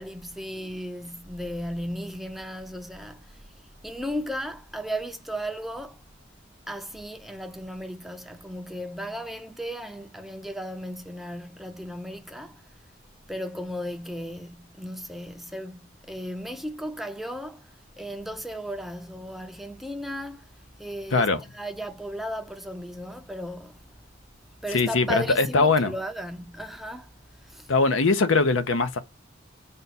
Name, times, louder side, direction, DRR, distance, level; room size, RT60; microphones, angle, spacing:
voice 1, 0.0-3.5 3.8-6.0 6.7-12.6 13.3-17.7 18.0-20.5 20.8-23.8 24.6-27.1 27.4-27.7, equal, ahead, 0.4 m, -35 dB
voice 2, 21.1-21.4 24.7-25.9 27.7-29.0, left 3 dB, 85° left, 0.7 m, -21 dB
5.2 x 2.3 x 4.0 m
head